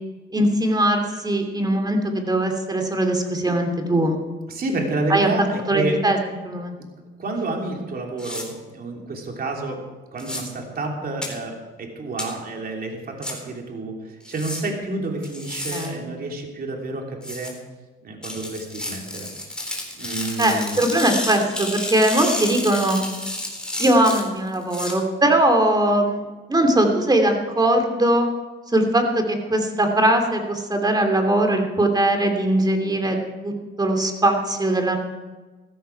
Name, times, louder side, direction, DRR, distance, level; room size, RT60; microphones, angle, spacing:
voice 1, 0.3-4.2 5.1-6.2 6.4-6.7 15.7-16.1 20.4-23.0 23.8-28.3 28.7-33.2 33.4-33.5 33.8-35.0, right 1 dB, 20° right, 4 dB, 2.8 m, -20 dB
voice 2, 4.5-5.9 6.8-6.9 7.2-9.8 10.1-17.5 18.0-20.8, right 2 dB, 50° right, 1 dB, 3.2 m, -29 dB
sound 1, 8.2-8.4 10.2-10.4 11.2-11.3 12.2-12.3 13.2-13.3 14.2-14.6 15.2-15.9 17.2-17.5 18.2-24.9, left 1 dB, 5° left, 4.1 m, -31 dB
15.5 x 14.0 x 4.7 m, 1.3 s
cardioid pair, 90°, 20 cm